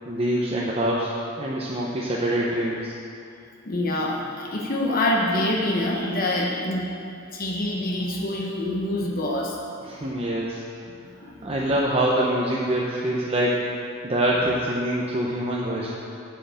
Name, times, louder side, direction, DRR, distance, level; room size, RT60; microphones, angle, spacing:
voice 1, 0.1-1.1 1.4-2.9 9.8-10.6 11.2-13.6 14.0-15.9, right 1 dB, 30° right, -4 dB, 0.8 m, -25 dB
voice 2, 3.6-6.9 7.3-9.6 10.9-11.3, left 1 dB, 45° left, -2 dB, 1.0 m, -26 dB
7.7 x 6.5 x 8.1 m, 2.6 s
head